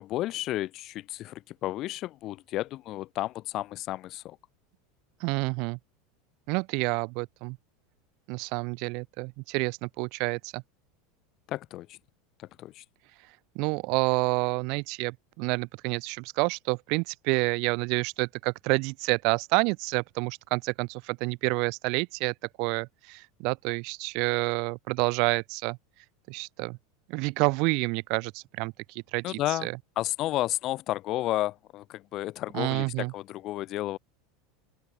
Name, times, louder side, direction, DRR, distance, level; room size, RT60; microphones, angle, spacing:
voice 1, 0.0-4.4 11.5-12.0 12.6-12.8 29.2-29.7 30.0-34.0, left 15 dB, 45° left, 5.7 m, -32 dB
voice 2, 5.2-5.8 6.5-7.6 8.3-10.6 13.6-25.8 26.3-26.8 27.1-29.8 32.5-33.1, right 30 dB, 50° right, 7.1 m, -29 dB
open air
figure-of-eight pair, 80°, 0 cm